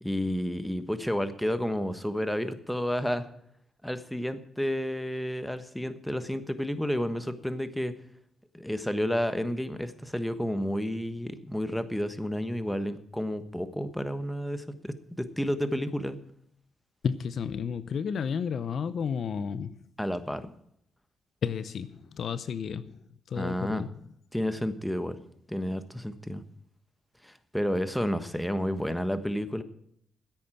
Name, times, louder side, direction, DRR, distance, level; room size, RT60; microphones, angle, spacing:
voice 1, 0.0-3.3 3.8-7.9 8.5-16.2 20.0-20.5 23.4-23.8 24.3-25.2 25.5-26.4 27.2-29.6, equal, 5° left, 1.3 m, -31 dB
voice 2, 17.0-19.8 21.4-23.9, left 6 dB, 65° left, 0.7 m, -32 dB
10.0 x 8.5 x 9.0 m
cardioid pair, 70°, 0 cm